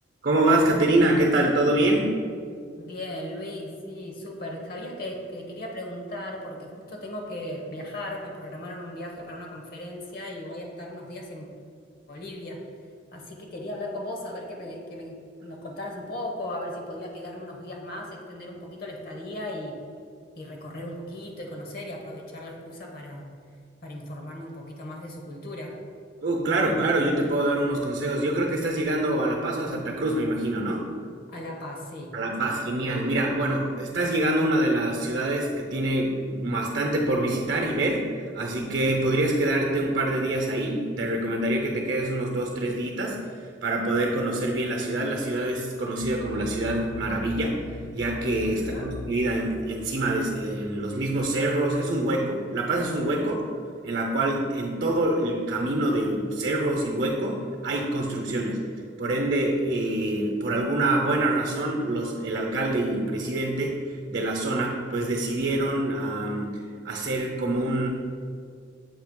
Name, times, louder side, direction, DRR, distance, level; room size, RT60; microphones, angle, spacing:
voice 1, 0.2-2.5 26.2-30.9 32.1-38.0 38.3-47.6 47.9-53.4 53.8-58.6 59.0-67.9, right 1 dB, 60° right, 0 dB, 0.8 m, -25 dB
voice 2, 2.8-11.5 12.1-12.6 13.1-19.8 20.4-23.2 23.8-25.8 31.3-32.1 32.4-32.7 48.5-48.9, left 1 dB, 55° left, 1 dB, 0.9 m, -37 dB
sound 1, 46.0-50.7, left 2 dB, 85° left, 0.4 m, -40 dB
7.4 x 2.8 x 5.2 m, 2.2 s
head